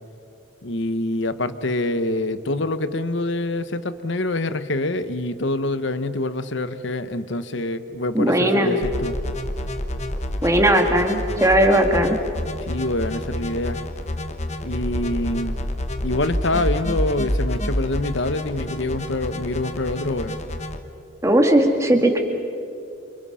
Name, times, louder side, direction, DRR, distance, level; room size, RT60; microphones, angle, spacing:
voice 1, 0.6-9.2 12.6-13.8 14.6-15.6 16.0-20.4, left 2 dB, 60° left, 12 dB, 1.1 m, -25 dB
voice 2, 8.1-8.8 10.4-12.2 21.2-22.2, right 1 dB, 15° right, 4 dB, 2.1 m, -18 dB
sound 1, 8.8-20.8, left 1 dB, 35° left, 1.2 m, -28 dB
28.5 x 28.0 x 5.7 m, 2.6 s
head